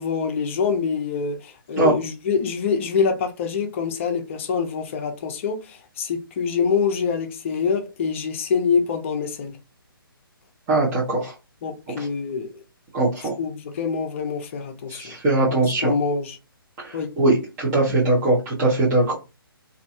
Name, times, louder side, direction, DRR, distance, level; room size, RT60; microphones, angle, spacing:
voice 1, 0.0-9.6 11.6-12.5 13.2-15.2 15.5-16.4 16.9-17.1, left 5 dB, 35° left, 0.6 m, -25 dB
voice 2, 10.7-11.3 12.9-13.3 14.9-15.9 16.8-19.2, right 2 dB, 20° right, 1.0 m, -21 dB
2.7 x 2.6 x 2.4 m
figure-of-eight pair, 140°, 12 cm